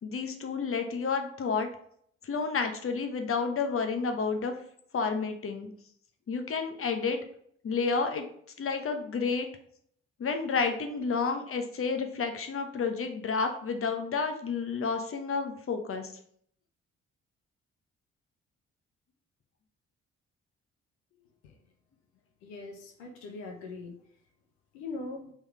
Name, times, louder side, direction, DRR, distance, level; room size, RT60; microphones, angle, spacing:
voice 1, 0.0-1.7 2.2-4.5 4.9-5.7 6.3-7.2 7.6-8.2 8.6-9.5 10.2-16.1, left 5 dB, 40° left, 6 dB, 1.1 m, -30 dB
voice 2, 22.4-24.1 24.7-25.3, left 3 dB, 80° left, 2 dB, 0.9 m, -41 dB
5.5 x 4.0 x 4.5 m, 0.65 s
hypercardioid pair, 45°, 33 cm